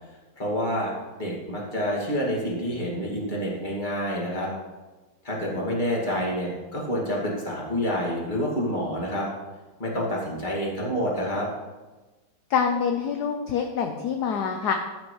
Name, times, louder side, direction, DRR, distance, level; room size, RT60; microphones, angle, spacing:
voice 1, 0.4-0.9 1.2-4.5 5.2-9.3 9.8-11.5, equal, 20° left, -3 dB, 2.3 m, -28 dB
voice 2, 12.5-14.7, left 6 dB, 65° left, 4 dB, 1.1 m, -25 dB
14.0 x 8.4 x 3.3 m, 1.2 s
omnidirectional pair, 2.2 m